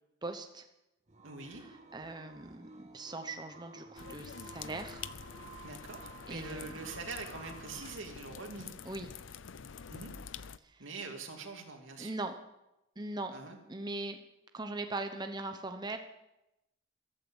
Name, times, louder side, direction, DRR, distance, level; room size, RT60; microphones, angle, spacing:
voice 1, 0.2-0.6 1.5-5.0 6.3-6.9 8.8-9.1 10.6-10.8 12.0-12.3 13.0-13.3 13.7-14.2 14.5-16.0, right 2 dB, 20° right, 6 dB, 1.0 m, -40 dB
sound 1, 1.1-8.0, right 4 dB, 35° right, 1.6 m, -53 dB
voice 2, 1.2-1.6 5.6-8.7 9.9-10.1 10.8-12.1 13.3-13.6, right 3 dB, 90° right, 3 dB, 2.8 m, -44 dB
sound 2, 4.0-10.6, left 6 dB, 80° left, 0.6 m, -47 dB
14.5 x 13.0 x 7.1 m, 0.91 s
head